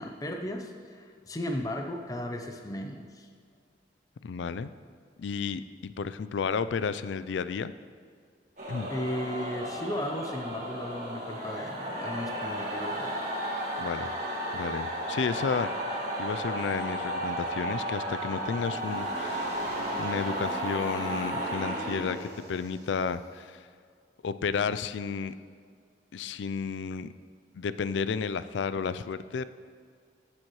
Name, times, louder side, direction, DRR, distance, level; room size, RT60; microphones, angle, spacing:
voice 1, 0.0-3.3 8.9-13.2, left 1 dB, 20° left, 4 dB, 0.6 m, -35 dB
voice 2, 4.2-4.7 5.2-7.7 8.7-8.9 13.8-14.1 14.5-15.7 16.2-19.6 20.0-23.7 24.2-25.3 26.1-27.1 27.5-29.4, left 5 dB, 80° left, 14 dB, 0.4 m, -32 dB
sound 1, 8.6-22.7, right 1 dB, 45° right, 2.0 m, -33 dB
14.0 x 7.5 x 3.1 m, 2.1 s
head